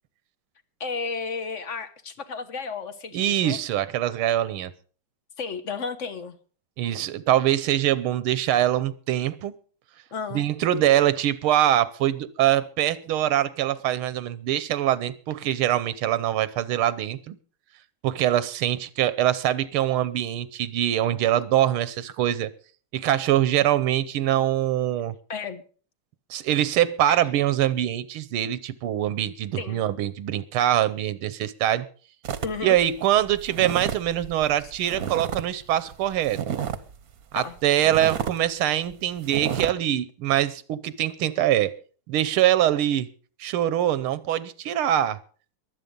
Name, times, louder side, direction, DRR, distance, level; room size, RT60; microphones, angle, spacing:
voice 1, 0.8-3.6 5.4-6.4 10.1-10.4 25.3-25.6 27.1-27.2 29.6-29.8 32.4-32.8 37.3-37.5, left 5 dB, 45° left, 1.1 m, -33 dB
voice 2, 3.1-4.7 6.8-9.6 10.3-17.4 18.0-22.5 22.9-25.2 26.3-31.9 32.6-36.4 37.3-41.7 42.1-43.1 43.4-45.2, right 12 dB, 85° right, 1.7 m, -23 dB
sound 1, 32.2-35.5 35.7-37.0 37.4-37.5 37.8-38.4 38.8-38.9 39.2-39.7, right 8 dB, 50° right, 1.2 m, -31 dB
22.5 x 8.4 x 5.3 m
omnidirectional pair, 2.3 m